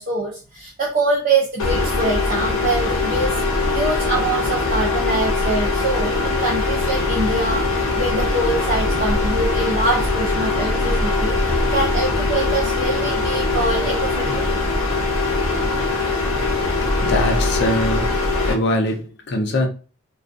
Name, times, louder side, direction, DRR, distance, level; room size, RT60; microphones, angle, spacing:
voice 1, 0.0-3.3 3.7-14.5, right 2 dB, 45° right, 0.5 m, -24 dB
sound 1, 1.6-18.5, left 3 dB, 80° left, 0.7 m, -21 dB
sound 2, 7.2-13.6, left 1 dB, 15° left, 0.9 m, -39 dB
voice 2, 17.0-18.2 18.5-19.7, left 1 dB, 55° left, 0.5 m, -22 dB
2.3 x 2.3 x 2.5 m
head